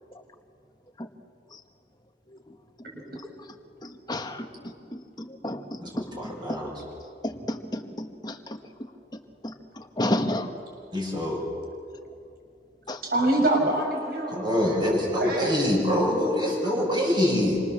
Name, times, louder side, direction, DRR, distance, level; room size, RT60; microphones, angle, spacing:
voice 1, 3.8-6.6 7.2-8.6 9.4-10.5 12.9-13.0, left 1 dB, 25° left, 6 dB, 1.5 m, -32 dB
voice 2, 5.8-6.7 10.9-11.4 14.3-17.6, left 1 dB, 25° right, -3 dB, 6.5 m, -25 dB
voice 3, 13.0-14.9 15.1-15.7 16.7-16.8, right 1 dB, 55° right, 1 dB, 6.9 m, -26 dB
27.5 x 26.5 x 7.4 m, 2.4 s
head